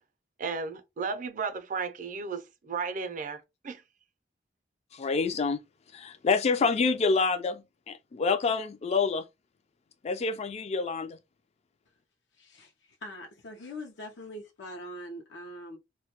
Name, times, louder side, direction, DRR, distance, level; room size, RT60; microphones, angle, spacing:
voice 1, 0.4-3.8, right 5 dB, 50° right, 0.5 m, -34 dB
voice 2, 4.9-5.6 5.9-9.2 10.0-11.2, left 4 dB, 35° left, 0.3 m, -27 dB
voice 3, 12.4-15.8, left 1 dB, 85° left, 0.5 m, -43 dB
2.2 x 2.2 x 2.7 m
head